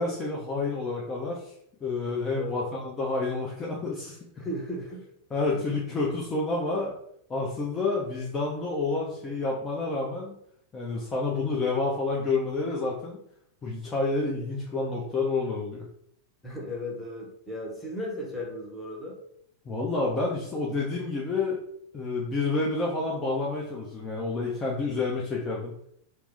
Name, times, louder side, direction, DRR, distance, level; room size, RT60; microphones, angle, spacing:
voice 1, 0.0-1.5 1.8-4.4 5.3-7.0 7.3-10.3 10.7-13.2 13.6-15.9 19.7-21.6 21.9-25.7, left 3 dB, 20° left, -3 dB, 0.5 m, -29 dB
voice 2, 2.3-2.7 4.4-5.1 5.6-6.0 16.4-19.2 24.4-24.8, left 1 dB, 5° left, -3 dB, 0.9 m, -36 dB
2.9 x 2.0 x 3.2 m, 0.70 s
figure-of-eight pair, 90°, 0 cm